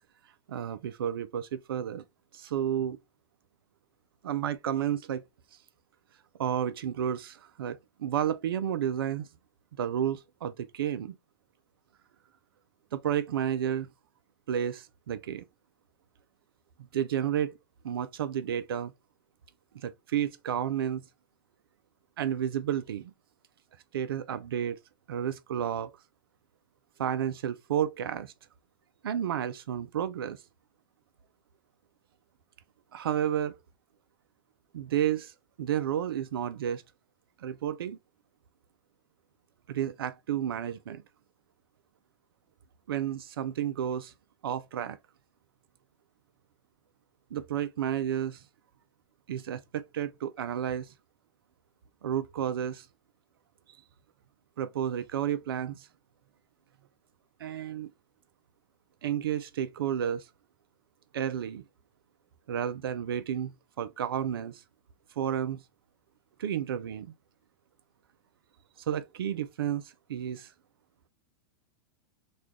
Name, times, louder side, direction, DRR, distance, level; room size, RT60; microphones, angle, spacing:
voice 1, 0.5-2.0 2.3-3.0 4.2-5.2 6.4-9.3 9.8-11.2 12.9-13.9 14.5-15.4 16.9-17.6 17.8-18.9 19.7-21.0 22.2-23.1 23.9-24.8 25.1-25.9 27.0-28.3 29.0-30.4 32.9-33.5 34.7-35.3 35.6-36.8 37.4-38.0 39.7-41.0 42.9-44.1 44.4-45.0 47.3-48.4 49.3-50.9 52.0-52.9 54.6-55.9 57.4-57.9 59.0-60.3 61.1-61.6 62.5-63.5 63.8-64.6 65.2-65.6 66.4-67.1 68.9-70.5, right 9 dB, 85° right, 0.4 m, -31 dB
3.1 x 2.3 x 3.6 m
hypercardioid pair, 120°, 12 cm